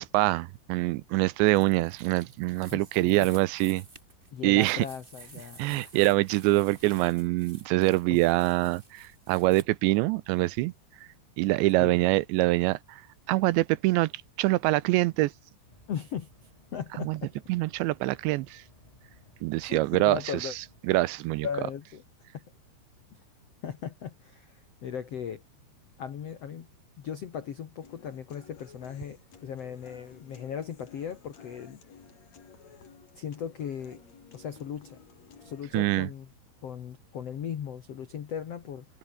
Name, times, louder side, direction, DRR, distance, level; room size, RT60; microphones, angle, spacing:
voice 1, 0.0-3.8 4.4-4.9 5.6-10.7 11.4-13.0 13.3-14.1 14.4-15.3 17.0-17.2 17.5-18.6 19.4-20.5 20.9-21.5 35.7-36.1, right 19 dB, 80° right, 2.8 m, -25 dB
sound 1, 1.5-9.6, right 3 dB, 40° right, 0.7 m, -52 dB
voice 2, 2.7-3.3 4.3-5.9 11.8-12.0 15.9-16.3 16.7-17.3 19.7-20.5 21.4-22.0 22.3-22.4 23.6-25.4 26.0-26.7 27.0-31.8 33.1-34.0 34.3-35.0 35.4-36.3 36.6-38.8, left 8 dB, 90° left, 1.3 m, -37 dB
sound 2, 15.6-20.8, left 1 dB, 5° left, 6.1 m, -60 dB
Human voice / Acoustic guitar, 27.8-35.8, left 6 dB, 40° left, 3.7 m, -54 dB
omnidirectional pair, 5.4 m